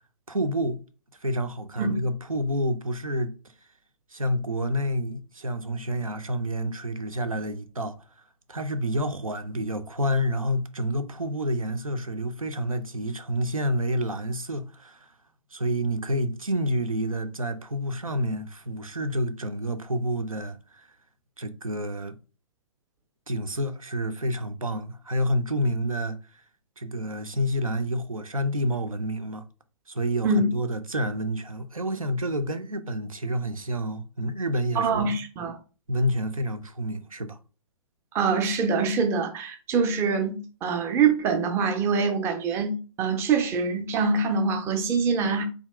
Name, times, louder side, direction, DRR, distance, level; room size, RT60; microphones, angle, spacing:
voice 1, 0.3-0.8 1.2-3.3 4.1-8.0 8.5-15.1 15.5-20.9 21.4-22.2 23.3-26.2 26.8-29.4 29.9-35.1 35.9-37.4, equal, 85° right, 0.6 m, -29 dB
voice 2, 34.7-35.6 38.1-45.4, right 4 dB, 15° right, 0.5 m, -24 dB
3.7 x 2.8 x 3.2 m
figure-of-eight pair, 120°, 17 cm